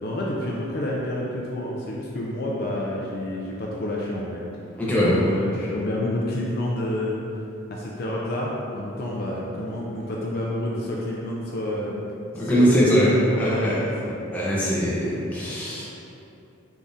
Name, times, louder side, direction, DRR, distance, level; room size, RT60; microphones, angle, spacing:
voice 1, 0.0-4.4 5.0-7.2 7.7-12.0 12.4-14.3, left 1 dB, 50° left, -4 dB, 0.4 m, -29 dB
voice 2, 4.8-5.1 12.3-13.1 13.4-13.7 14.3-15.9, equal, 5° left, -8 dB, 0.6 m, -21 dB
3.6 x 3.5 x 2.6 m, 2.8 s
head